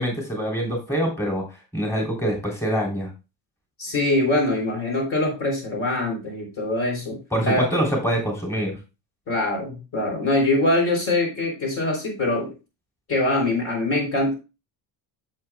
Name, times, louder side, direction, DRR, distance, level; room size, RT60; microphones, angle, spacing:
voice 1, 0.0-1.4 1.7-3.1 7.3-8.8, equal, 5° left, -1 dB, 3.2 m, -25 dB
voice 2, 3.8-7.7 9.3-12.5 13.1-14.3, left 2 dB, 35° left, 0 dB, 3.6 m, -23 dB
10.5 x 7.9 x 2.3 m, 0.28 s
cardioid pair, 175°, 40 cm